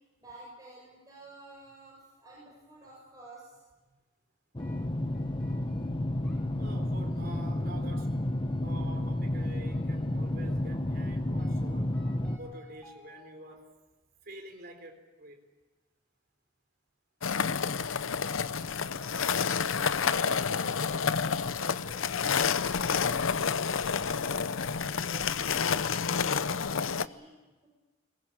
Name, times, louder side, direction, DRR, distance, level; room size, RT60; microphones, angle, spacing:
voice 1, 0.0-3.9 18.4-19.4 19.8-25.9 26.3-27.7, right 1 dB, 20° right, -4 dB, 7.0 m, -53 dB
sound 1, 4.6-12.4, left 1 dB, 25° left, 0.9 m, -31 dB
sound 2, 4.6-13.5, left 1 dB, 5° left, 5.2 m, -59 dB
voice 2, 6.6-8.2 8.6-12.0 12.4-13.7 14.2-15.4, right 1 dB, 50° right, 4 dB, 4.0 m, -47 dB
sound 3, 17.2-27.1, left 6 dB, 85° left, 0.7 m, -29 dB
22.0 x 20.5 x 8.8 m, 1.2 s
head